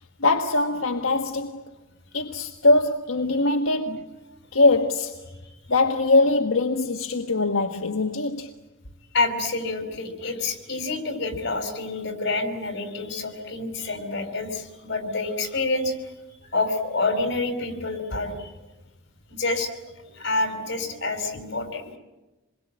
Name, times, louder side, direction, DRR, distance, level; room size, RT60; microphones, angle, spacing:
voice 1, 0.2-1.6 2.1-4.2 4.5-5.2 5.7-8.5, left 2 dB, 80° left, 1.5 m, -22 dB
voice 2, 9.1-16.0 16.5-18.5 19.3-19.7 20.1-21.9, left 3 dB, 55° left, 4.9 m, -27 dB
27.5 x 22.0 x 8.7 m
head